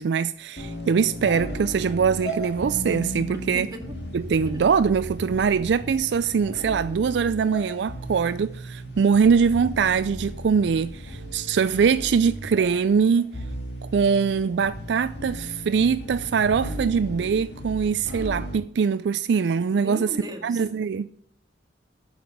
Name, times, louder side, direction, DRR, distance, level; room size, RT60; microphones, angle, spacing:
voice 1, 0.0-3.7 4.1-13.4 13.8-20.1 20.4-21.1, right 6 dB, 70° right, 0.4 m, -22 dB
sound 1, 0.6-18.5, equal, 65° left, 2.6 m, -36 dB
voice 2, 3.5-4.0 4.5-4.6 19.7-20.9, equal, 20° right, 1.9 m, -37 dB
8.7 x 7.0 x 7.8 m
head